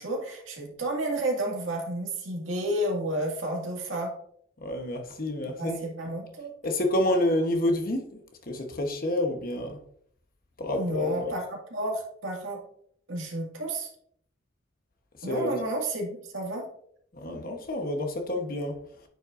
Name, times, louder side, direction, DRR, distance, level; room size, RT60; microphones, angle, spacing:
voice 1, 0.0-4.1 5.6-6.5 10.7-12.6 13.1-13.9 15.2-16.7, right 1 dB, 85° right, 2.0 m, -31 dB
voice 2, 4.6-5.8 6.6-8.2 8.5-9.8 10.6-11.3 15.3-15.5 17.1-18.8, left 1 dB, 45° left, 1.0 m, -28 dB
8.9 x 5.4 x 2.5 m
head